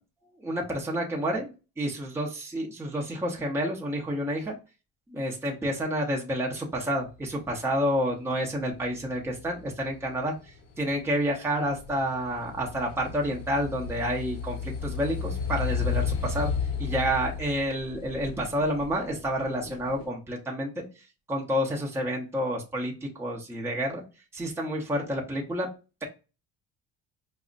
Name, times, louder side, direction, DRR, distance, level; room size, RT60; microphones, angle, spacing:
voice 1, 0.4-1.5 1.8-4.5 5.1-10.3 10.8-16.5 16.8-20.8 21.3-24.0 24.3-25.7, equal, 10° right, -1 dB, 0.7 m, -29 dB
sound 1, 8.7-20.0, left 6 dB, 55° left, 1.1 m, -34 dB
5.0 x 2.0 x 2.5 m, 0.30 s
cardioid pair, 120°, 30 cm